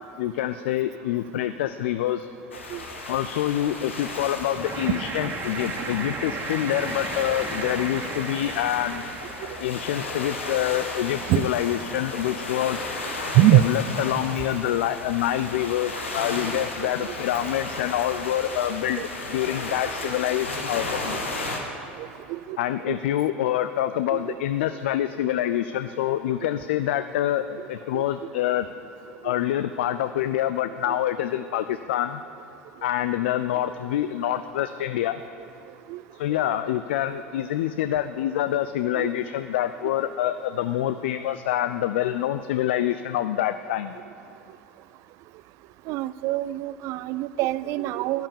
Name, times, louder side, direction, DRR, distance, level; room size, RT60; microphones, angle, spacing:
voice 1, 0.2-2.3 3.1-9.0 9.6-12.8 13.4-21.2 22.6-28.7 29.2-32.2 32.8-35.2 36.1-43.9, left 12 dB, 65° left, 11 dB, 0.4 m, -26 dB
sound 1, 2.5-21.6, left 2 dB, 85° left, 1.6 m, -34 dB
sound 2, 4.6-10.0, right 4 dB, 35° right, 1.7 m, -35 dB
voice 2, 13.3-13.7 14.6-14.7 16.5-16.6 17.0-17.1 19.8-20.1 22.0-22.6 22.9-23.0 24.1-24.4 27.9-28.0 29.2-29.3 35.9-36.0 36.4-36.6 38.9-39.1 45.9-48.3, right 16 dB, 50° right, 17 dB, 0.4 m, -24 dB
12.0 x 10.5 x 7.1 m, 2.8 s
figure-of-eight pair, 75°, 6 cm